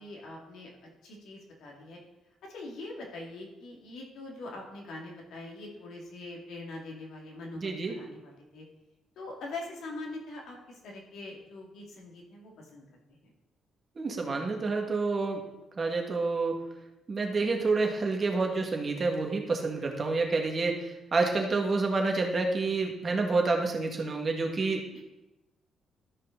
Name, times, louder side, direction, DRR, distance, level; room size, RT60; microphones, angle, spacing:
voice 1, 0.0-2.0 2.4-8.6 9.2-12.8 13.2-13.3 24.9-25.0, left 2 dB, 75° left, -1 dB, 2.4 m, -43 dB
voice 2, 7.6-8.0 13.9-15.4 15.8-16.6 17.1-25.0, right 3 dB, 35° right, 2 dB, 1.8 m, -28 dB
13.0 x 5.5 x 3.9 m, 0.98 s
cardioid pair, 90°, 0 cm